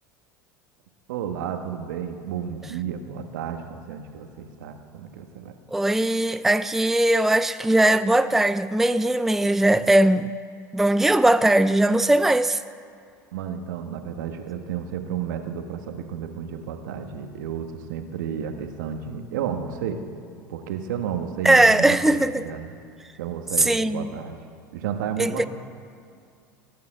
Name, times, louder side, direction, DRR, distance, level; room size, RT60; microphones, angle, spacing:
voice 1, 1.1-5.5 13.3-20.0 20.5-22.7 23.2-24.4 24.7-25.5, right 8 dB, 75° right, 1.5 m, -32 dB
voice 2, 5.7-10.3 10.7-12.6 21.4-22.5 23.6-24.1 25.2-25.5, right 1 dB, 5° right, 0.4 m, -19 dB
18.0 x 9.4 x 7.6 m
hypercardioid pair, 80°, 10 cm